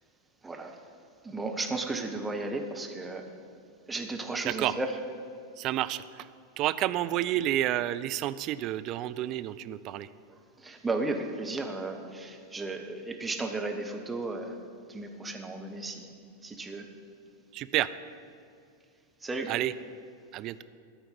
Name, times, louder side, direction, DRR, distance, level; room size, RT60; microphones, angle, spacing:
voice 1, 0.4-0.8 1.2-3.3 3.9-4.9 10.3-14.6 14.9-16.1 16.4-16.9 19.2-19.5, right 2 dB, 10° right, 3 dB, 1.0 m, -34 dB
voice 2, 5.6-6.3 6.6-10.1 17.5-17.9 19.5-19.7 20.3-20.6, right 13 dB, 40° right, 14 dB, 0.3 m, -30 dB
13.0 x 4.5 x 6.9 m, 2.4 s
figure-of-eight pair, 90°, 0 cm